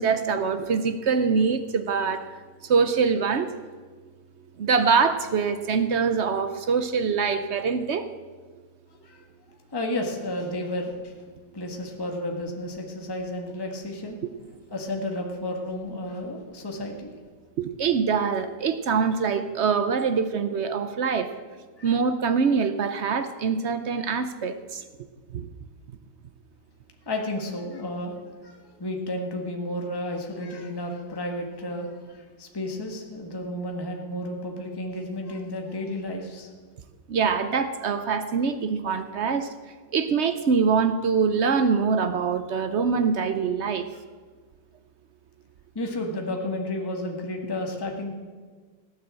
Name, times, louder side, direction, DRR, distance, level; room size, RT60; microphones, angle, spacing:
voice 1, 0.0-2.2 2.6-3.5 4.6-8.1 17.6-21.3 21.8-24.8 25.3-25.5 37.1-39.5 39.9-43.9, right 5 dB, 70° right, 10 dB, 0.6 m, -24 dB
voice 2, 9.7-11.1 11.5-14.2 14.7-17.1 21.8-21.9 27.0-28.1 28.4-36.5 45.7-48.1, left 1 dB, 15° left, 1 dB, 1.5 m, -32 dB
17.0 x 9.5 x 7.6 m, 1.5 s
omnidirectional pair, 2.0 m